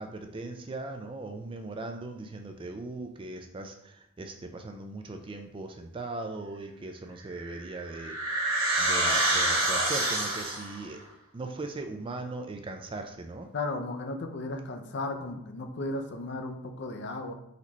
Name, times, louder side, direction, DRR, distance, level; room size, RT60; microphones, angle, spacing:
voice 1, 0.0-8.5 8.8-11.0 11.3-13.5, right 2 dB, 25° right, 5 dB, 0.3 m, -39 dB
sound 1, 7.4-10.8, right 2 dB, 65° right, 1.3 m, -27 dB
voice 2, 13.5-17.3, left 2 dB, 50° left, 5 dB, 0.5 m, -35 dB
4.1 x 3.1 x 4.0 m, 0.79 s
head